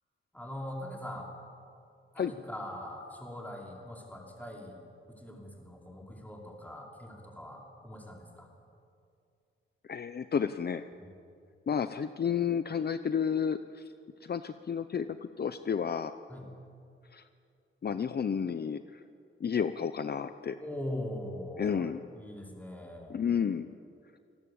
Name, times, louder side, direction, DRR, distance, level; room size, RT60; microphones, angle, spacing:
voice 1, 0.3-1.3 2.1-4.8 5.1-8.5 11.0-11.1 16.3-16.5 20.6-23.3, left 1 dB, 5° left, -1 dB, 5.3 m, -42 dB
voice 2, 9.9-10.9 11.7-13.8 14.2-16.1 17.1-17.2 17.8-19.0 19.4-20.6 21.6-22.0 23.1-23.7, left 7 dB, 50° left, 11 dB, 0.8 m, -31 dB
28.0 x 19.0 x 8.7 m, 2.5 s
wide cardioid pair, 105°, 21 cm